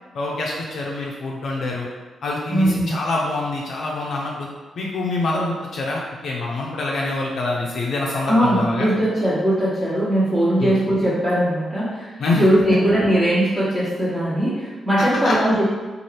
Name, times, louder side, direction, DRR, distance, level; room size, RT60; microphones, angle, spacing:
voice 1, 0.1-1.9 2.2-4.5 4.8-8.9 10.6-10.8 12.2-12.5 15.0-15.3, left 2 dB, 70° left, -3 dB, 0.4 m, -25 dB
voice 2, 2.5-2.9 8.2-12.1 12.4-15.7, equal, 20° right, -12 dB, 1.0 m, -19 dB
2.7 x 2.4 x 3.2 m, 1.3 s
cardioid pair, 60°, 0 cm